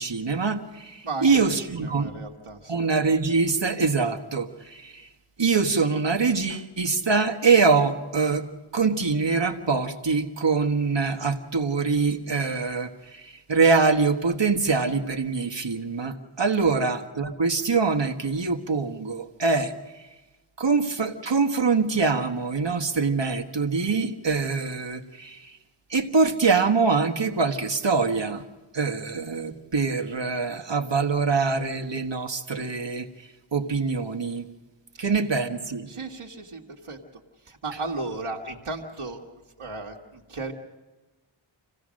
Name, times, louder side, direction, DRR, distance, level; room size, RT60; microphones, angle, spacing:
voice 1, 0.0-2.2 2.7-5.1 5.4-8.5 8.7-19.7 20.6-25.6 25.9-28.4 28.7-33.1 33.5-34.5 35.0-35.9, right 4 dB, 60° right, 5 dB, 1.6 m, -24 dB
voice 2, 1.0-2.8 16.7-16.8 34.9-35.1 35.9-39.2 39.6-40.5, right 3 dB, 80° right, 0 dB, 1.9 m, -35 dB
27.5 x 16.5 x 6.4 m, 1.2 s
wide cardioid pair, 50°, 50 cm